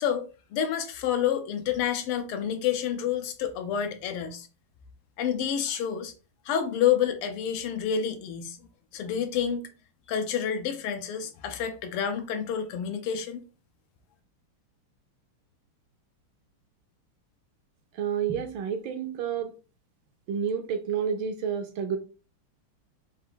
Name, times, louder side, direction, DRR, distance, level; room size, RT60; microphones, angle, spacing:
voice 1, 0.0-4.5 5.2-6.1 6.4-8.6 8.9-9.6 10.1-13.4, left 8 dB, 85° left, 1.6 m, -28 dB
voice 2, 17.9-19.5 20.3-22.0, right 7 dB, 75° right, 1.3 m, -29 dB
4.6 x 2.5 x 3.8 m
omnidirectional pair, 2.4 m